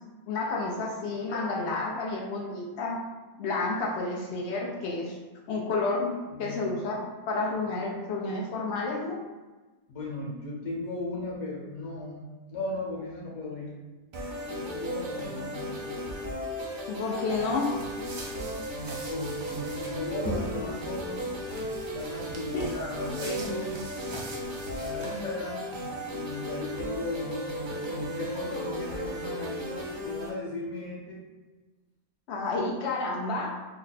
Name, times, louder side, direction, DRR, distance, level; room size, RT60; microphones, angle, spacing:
voice 1, 0.3-3.0 3.4-5.2 5.5-9.2 16.9-17.7 22.5-22.6 32.3-33.6, left 3 dB, 90° left, -2 dB, 0.6 m, -30 dB
voice 2, 6.3-6.7 9.9-12.2 12.5-13.7 14.5-16.1 19.1-21.2 21.9-23.7 24.8-25.6 26.1-31.2, left 2 dB, 65° left, -3 dB, 1.3 m, -36 dB
sound 1, 14.1-30.3, equal, 80° right, 0.4 m, -36 dB
sound 2, 17.3-25.2, right 1 dB, 60° right, 0.9 m, -41 dB
3.2 x 2.1 x 4.0 m, 1.2 s
omnidirectional pair, 1.7 m